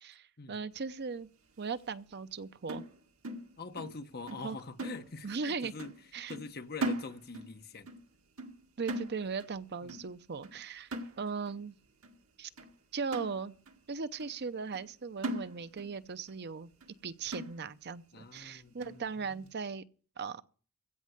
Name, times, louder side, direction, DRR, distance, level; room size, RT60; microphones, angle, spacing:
voice 1, 0.0-1.3 1.6-2.8 4.4-4.6 5.2-5.7 6.1-6.4 8.8-11.8 12.4-12.5 12.9-13.5 13.9-16.7 17.0-19.8 20.2-20.4, right 5 dB, 50° right, 0.6 m, -38 dB
sound 1, 2.7-4.0 4.3-4.5 4.8-5.5 5.8-6.0 6.3-7.6 7.9-8.1 8.4-9.6 9.9-10.1 10.4-10.6 10.9-11.5 12.0-12.1 12.6-12.7 13.1-13.8 14.2-14.3 14.7-14.9 15.2-16.0 16.3-16.4 16.8-16.9 17.3-17.9 18.4-18.5 18.8-19.0, right 1 dB, 70° right, 1.9 m, -39 dB
voice 2, 3.6-5.9 6.3-7.9 9.8-10.0 18.1-19.0 19.3-19.4, left 4 dB, 45° left, 1.0 m, -44 dB
16.0 x 5.5 x 9.7 m
head